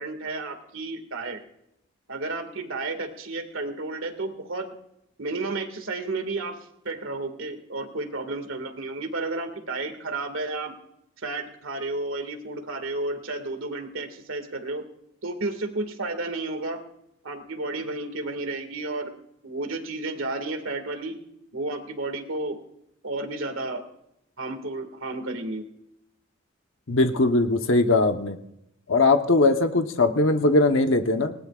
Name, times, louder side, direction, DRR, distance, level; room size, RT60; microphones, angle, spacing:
voice 1, 0.0-1.4 2.1-4.7 5.2-6.6 6.8-10.8 11.2-14.8 15.2-16.8 17.2-19.1 19.4-21.2 21.5-22.6 23.0-23.8 24.4-25.6, right 2 dB, 75° right, 7 dB, 2.0 m, -32 dB
voice 2, 26.9-28.4 28.9-31.3, left 2 dB, 70° left, 6 dB, 1.0 m, -20 dB
19.5 x 19.0 x 2.4 m, 0.79 s
head